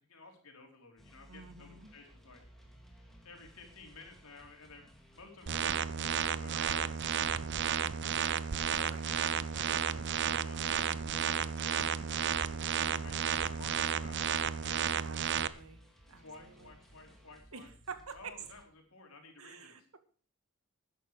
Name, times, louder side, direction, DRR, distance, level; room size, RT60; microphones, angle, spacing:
voice 1, 0.1-2.4 3.2-4.9 5.1-6.9 8.8-12.2 12.8-14.2 14.4-14.9 16.2-17.7 18.1-19.8, left 3 dB, 75° left, 2 dB, 4.2 m, -54 dB
sound 1, 1.0-18.6, equal, ahead, 2.9 m, -59 dB
voice 2, 1.3-1.9 6.5-6.9 8.9-9.0 15.0-15.8 16.1-16.8 17.5-18.3 19.4-20.0, right 5 dB, 70° right, 9 dB, 1.8 m, -48 dB
sound 2, 5.5-15.5, right 8 dB, 55° right, 0.7 m, -32 dB
13.0 x 10.0 x 4.9 m, 0.43 s
head